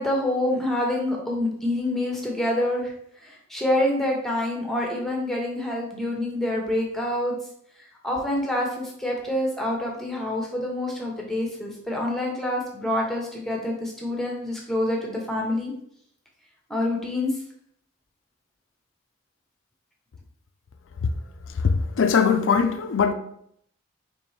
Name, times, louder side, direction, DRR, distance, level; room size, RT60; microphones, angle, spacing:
voice 1, 0.0-7.3 8.0-15.7 16.7-17.4, left 1 dB, ahead, 0.8 m, -27 dB
voice 2, 21.6-23.1, left 6 dB, 65° left, 0.4 m, -21 dB
4.4 x 3.1 x 3.2 m
head